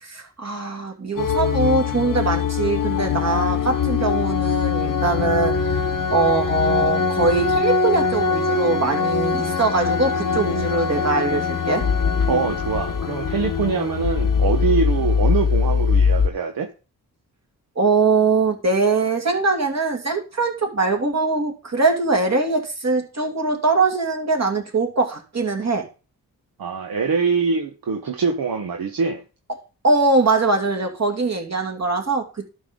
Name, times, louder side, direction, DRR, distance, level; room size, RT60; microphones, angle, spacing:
voice 1, 0.0-11.8 17.8-25.9 29.8-32.5, right 3 dB, 40° right, 2.5 m, -22 dB
sound 1, 1.2-16.3, left 5 dB, 55° left, 1.0 m, -22 dB
voice 2, 12.3-16.7 26.6-29.2, right 5 dB, 60° right, 1.1 m, -24 dB
11.5 x 5.4 x 3.8 m
supercardioid pair, 40°, 40 cm